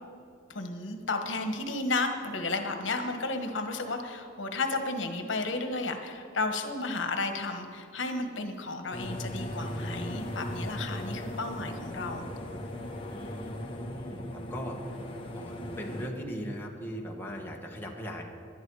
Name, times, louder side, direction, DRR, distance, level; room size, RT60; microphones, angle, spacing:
voice 1, 0.5-12.3, left 3 dB, 75° left, 6 dB, 1.3 m, -33 dB
sound 1, 8.9-16.1, equal, 30° left, 1.3 m, -38 dB
voice 2, 13.1-14.7 15.3-18.2, equal, 10° left, -1 dB, 1.5 m, -39 dB
19.5 x 11.5 x 4.8 m, 2.3 s
head